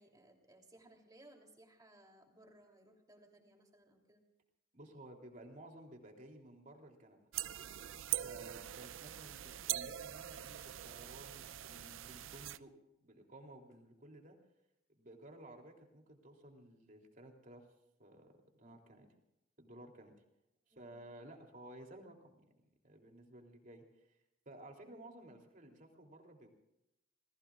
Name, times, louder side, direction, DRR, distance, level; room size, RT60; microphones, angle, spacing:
voice 1, 0.0-4.2 8.4-8.7 20.7-20.9, right 1 dB, 20° right, 1 dB, 3.2 m, -62 dB
voice 2, 4.7-7.2 8.2-12.7 13.0-14.4 14.9-17.7 18.0-19.1 19.6-20.1 20.7-22.4 22.8-24.2 24.4-26.5, right 1 dB, 40° right, 2 dB, 3.2 m, -55 dB
sound 1, 7.3-12.6, right 13 dB, 75° right, 0.5 m, -42 dB
28.5 x 20.5 x 2.4 m, 0.87 s
head